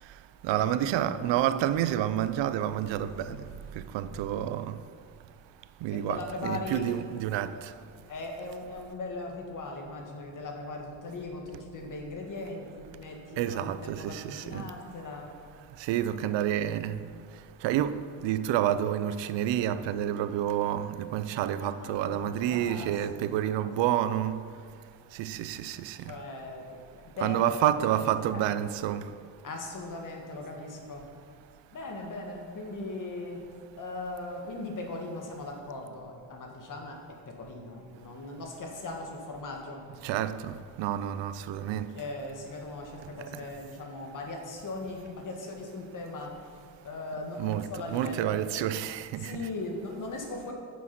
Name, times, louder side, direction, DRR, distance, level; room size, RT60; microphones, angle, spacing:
voice 1, 0.4-3.4 3.8-4.8 5.8-7.7 13.4-14.7 15.8-17.0 17.6-24.4 25.1-26.1 27.2-29.0 40.0-41.9 43.3-43.4 47.4-49.4, right 11 dB, 90° right, 0.6 m, -29 dB
sound 1, 2.6-5.3 5.8-9.1, equal, 20° right, 1.3 m, -57 dB
voice 2, 5.9-6.9 8.1-15.3 21.6-22.9 23.2-23.7 26.0-27.4 27.9-28.5 29.4-31.0 31.7-33.4 33.8-39.9 41.7-48.4 49.2-50.5, left 2 dB, 45° left, 1.7 m, -39 dB
9.3 x 6.2 x 6.0 m
cardioid pair, 140°, 43 cm